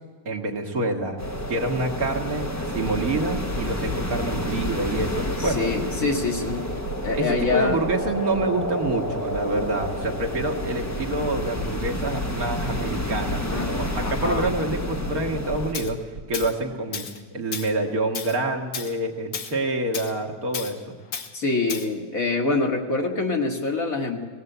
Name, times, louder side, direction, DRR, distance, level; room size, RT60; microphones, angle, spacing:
voice 1, 0.3-1.2 1.5-5.8 7.2-16.0 16.3-17.1 17.3-21.0, right 2 dB, 50° right, 2 dB, 2.0 m, -27 dB
sound 1, 1.2-15.7, left 1 dB, 10° left, 1.0 m, -30 dB
voice 2, 5.4-6.7 7.0-7.8 13.4-13.7 14.0-14.5 21.3-24.3, left 3 dB, 50° left, 2 dB, 2.1 m, -25 dB
sound 2, 6.0-10.7 11.0-11.3 11.6-14.1 14.5-16.5, right 3 dB, 75° right, 1.7 m, -36 dB
Tools, 15.7-15.9 16.3-16.6 16.9-17.2 17.5-17.7 18.2-18.4 18.7-18.9 19.3-19.5 19.9-20.1 20.5-20.7 21.1-21.3 21.7-21.9, left 7 dB, 90° left, 2.0 m, -33 dB
18.5 x 17.5 x 8.0 m, 1.5 s
omnidirectional pair, 2.0 m